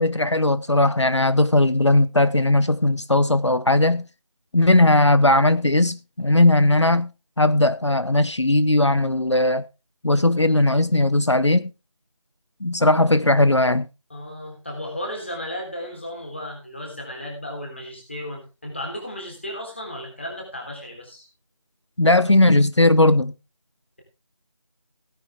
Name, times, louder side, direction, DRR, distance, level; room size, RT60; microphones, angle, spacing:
voice 1, 0.0-4.1 4.5-7.1 7.4-9.6 10.0-11.7 12.6-13.9 22.0-23.3, left 2 dB, 55° left, 0.8 m, -18 dB
voice 2, 14.1-21.3, left 1 dB, 20° left, 3.6 m, -34 dB
17.0 x 9.7 x 3.5 m
figure-of-eight pair, 180°, 17 cm